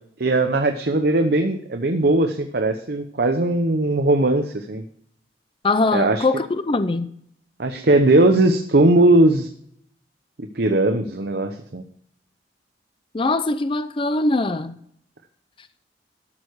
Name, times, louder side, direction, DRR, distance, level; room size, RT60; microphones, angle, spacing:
voice 1, 0.2-4.8 5.9-6.2 7.6-9.5 10.6-11.8, right 2 dB, 60° right, 0.8 m, -19 dB
voice 2, 5.6-7.1 13.1-14.7, left 2 dB, 30° left, 0.5 m, -22 dB
12.5 x 6.6 x 4.7 m
head